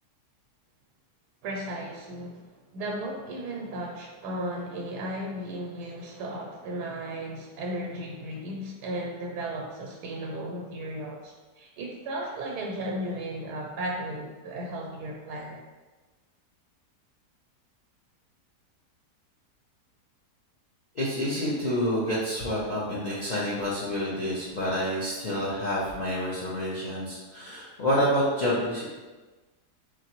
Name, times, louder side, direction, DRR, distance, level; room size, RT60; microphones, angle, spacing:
voice 1, 1.4-15.6, right 1 dB, 85° right, 0 dB, 1.2 m, -35 dB
voice 2, 20.9-28.9, equal, 50° left, -7 dB, 0.5 m, -28 dB
4.0 x 3.2 x 2.9 m, 1.2 s
omnidirectional pair, 1.7 m